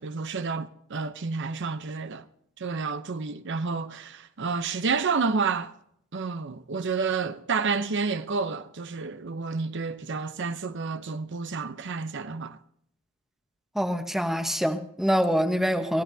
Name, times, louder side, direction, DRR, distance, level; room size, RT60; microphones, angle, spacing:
voice 1, 0.0-2.2 2.6-5.7 6.1-12.6, right 4 dB, 55° right, 0.7 m, -30 dB
voice 2, 13.7-16.0, equal, ahead, 1.0 m, -25 dB
24.5 x 16.0 x 2.7 m
head